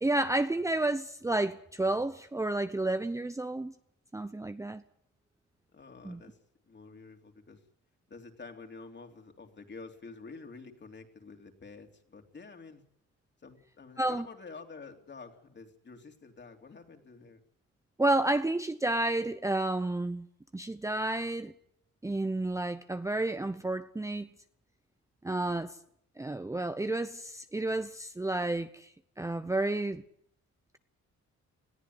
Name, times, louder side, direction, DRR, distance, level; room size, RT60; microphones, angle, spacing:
voice 1, 0.0-3.7 4.1-4.8 6.0-6.2 14.0-14.3 18.0-20.3 20.5-21.5 22.0-24.3 25.2-25.8 26.2-28.9 29.2-30.0, right 2 dB, 10° right, 0.8 m, -31 dB
voice 2, 5.7-6.4 6.7-7.6 8.1-12.8 13.4-17.4, left 4 dB, 35° left, 3.4 m, -49 dB
21.0 x 14.5 x 9.6 m
cardioid pair, 90°, 30 cm